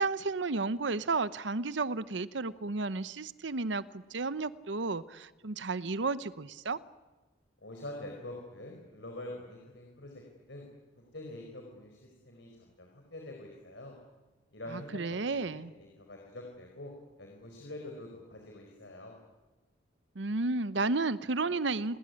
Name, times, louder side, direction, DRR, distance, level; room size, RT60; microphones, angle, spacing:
voice 1, 0.0-6.8 14.7-15.7 20.2-22.0, right 3 dB, 70° right, 15 dB, 0.8 m, -32 dB
voice 2, 7.6-10.2 10.5-10.7 11.0-14.0 14.5-15.0 15.3-16.9 17.2-19.2, left 1 dB, 70° left, 1 dB, 4.9 m, -45 dB
28.5 x 20.0 x 9.8 m, 1.2 s
head